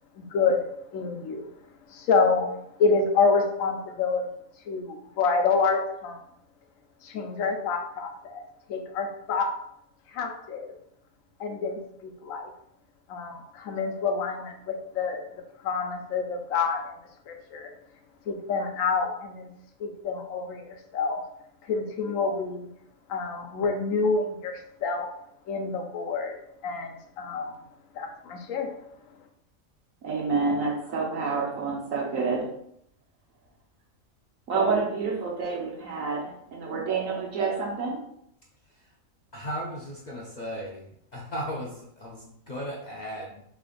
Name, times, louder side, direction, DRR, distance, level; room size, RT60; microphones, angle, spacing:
voice 1, 0.2-1.5 1.9-2.5 2.8-4.2 4.7-6.2 7.0-8.4 8.7-9.5 10.1-10.7 11.4-12.5 13.1-17.0 17.3-17.7 18.3-19.5 19.8-21.2 21.6-22.7 23.1-25.1 25.5-26.3 26.6-27.5 27.9-28.7, left 4 dB, 80° left, 4 dB, 1.0 m, -27 dB
voice 2, 30.0-32.5 34.5-38.0, right 4 dB, 75° right, -2 dB, 1.3 m, -28 dB
voice 3, 39.3-40.9 41.1-43.4, equal, 50° left, -3 dB, 0.5 m, -36 dB
3.3 x 2.5 x 3.8 m, 0.73 s
omnidirectional pair, 1.4 m